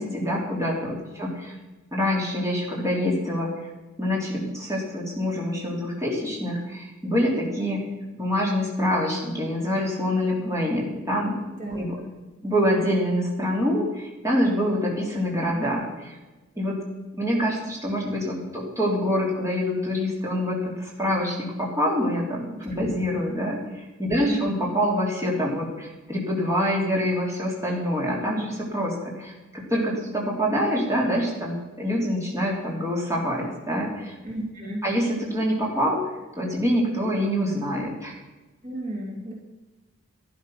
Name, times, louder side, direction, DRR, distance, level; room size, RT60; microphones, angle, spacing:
voice 1, 0.0-1.5 1.9-3.7 4.0-7.8 8.1-11.4 11.7-12.0 12.4-16.2 16.6-16.8 17.2-34.1 34.8-36.0 36.4-38.1, equal, 15° right, -3 dB, 3.3 m, -26 dB
voice 2, 11.6-12.1 24.2-24.4 34.2-34.8 38.6-39.3, right 1 dB, 35° right, -2 dB, 2.7 m, -32 dB
12.5 x 12.5 x 5.8 m, 1.1 s
head